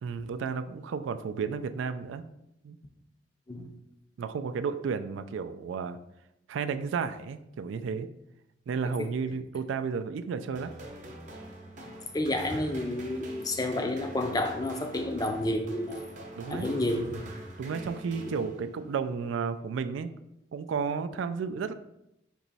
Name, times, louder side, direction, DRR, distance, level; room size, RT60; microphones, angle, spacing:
voice 1, 0.0-2.3 2.6-2.8 3.6-3.8 4.2-6.0 6.5-8.1 8.7-10.7 16.4-16.8 17.6-20.1 20.5-21.7, right 5 dB, 80° right, 10 dB, 0.3 m, -32 dB
sound 1, 10.5-18.9, right 1 dB, 40° right, 0.7 m, -45 dB
voice 2, 11.9-16.1 16.5-17.2 18.3-18.4, left 1 dB, 20° left, 5 dB, 0.4 m, -30 dB
4.5 x 2.9 x 4.0 m, 0.83 s
head